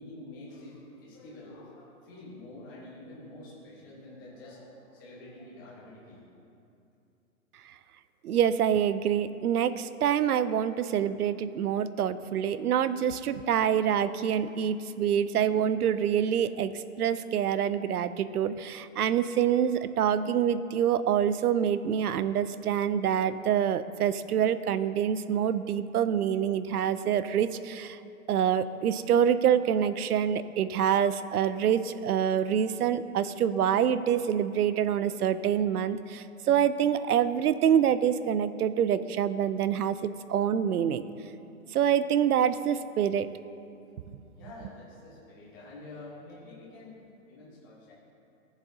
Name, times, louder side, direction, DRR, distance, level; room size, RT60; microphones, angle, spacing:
voice 1, 0.0-6.3 44.2-47.9, left 2 dB, 15° left, -7 dB, 1.1 m, -47 dB
voice 2, 8.2-28.0 28.3-41.0 41.7-43.3, right 9 dB, 85° right, 14 dB, 0.6 m, -26 dB
14.5 x 7.2 x 2.7 m, 2.6 s
hypercardioid pair, 175°, 44 cm